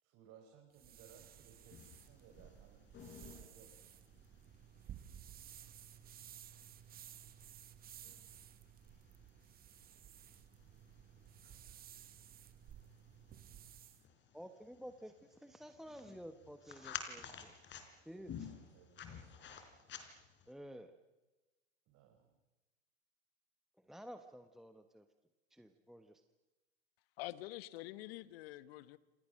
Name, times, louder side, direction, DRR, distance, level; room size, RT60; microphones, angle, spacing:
voice 1, 0.0-4.0 18.1-19.7 21.9-22.4, right 7 dB, 40° right, 2 dB, 5.0 m, -63 dB
sound 1, 0.7-14.0, right 10 dB, 25° right, 1.3 m, -56 dB
sound 2, 1.1-20.5, left 8 dB, 30° left, 4.3 m, -54 dB
voice 2, 14.3-17.6 18.1-18.5 20.5-20.9 23.8-25.1 25.5-26.2, equal, ahead, 7 dB, 1.2 m, -52 dB
voice 3, 27.2-29.0, left 17 dB, 55° left, 15 dB, 1.4 m, -46 dB
29.5 x 28.0 x 6.5 m, 1.1 s
hypercardioid pair, 100°, 37 cm